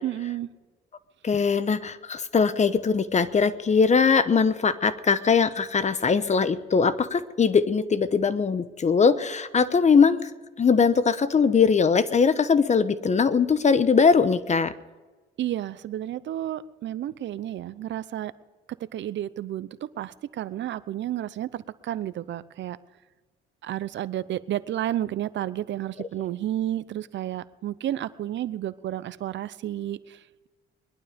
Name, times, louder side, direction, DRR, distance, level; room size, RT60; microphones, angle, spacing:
voice 1, 0.0-0.5 15.4-18.3 18.8-22.8 23.6-30.5, right 12 dB, 70° right, 16 dB, 0.7 m, -31 dB
voice 2, 1.2-10.3 10.6-14.7, left 5 dB, 35° left, 13 dB, 1.0 m, -21 dB
21.0 x 11.5 x 5.2 m, 1.3 s
cardioid pair, 90°, 20 cm